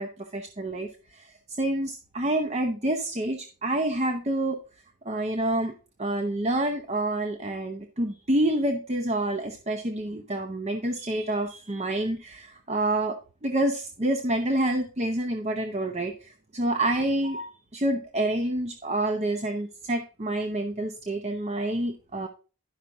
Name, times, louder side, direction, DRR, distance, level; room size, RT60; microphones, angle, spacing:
voice 1, 0.0-4.6 5.0-5.7 6.0-22.3, right 1 dB, 30° right, 5 dB, 0.8 m, -28 dB
11.0 x 5.8 x 3.8 m, 0.35 s
head